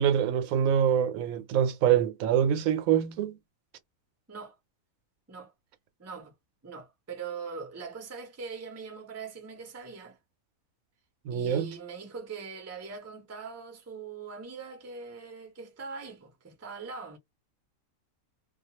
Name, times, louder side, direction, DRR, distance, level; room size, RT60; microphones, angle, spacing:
voice 1, 0.0-3.4 11.3-11.8, right 9 dB, 80° right, 1.0 m, -25 dB
voice 2, 6.0-6.3 6.6-10.2 11.3-17.2, right 5 dB, 20° right, 0.4 m, -42 dB
2.3 x 2.3 x 2.9 m
omnidirectional pair, 1.5 m